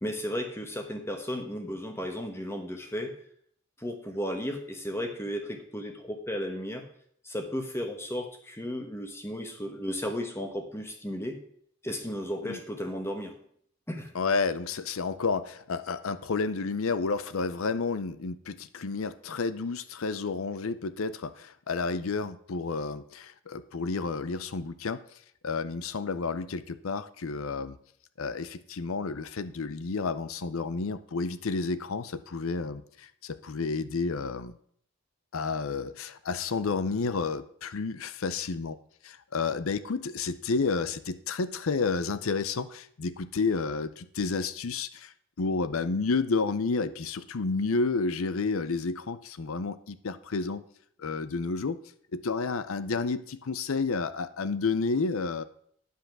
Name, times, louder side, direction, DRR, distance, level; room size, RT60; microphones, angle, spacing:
voice 1, 0.0-3.1 3.8-6.9 7.2-11.4 11.8-13.3 13.9-14.1, equal, 10° left, 5 dB, 1.1 m, -34 dB
voice 2, 14.1-25.0 25.4-27.8 28.2-34.6 35.3-38.8 39.0-50.6 51.0-51.8 52.1-55.4, left 4 dB, 70° left, 14 dB, 0.6 m, -31 dB
10.0 x 5.7 x 5.9 m, 0.64 s
head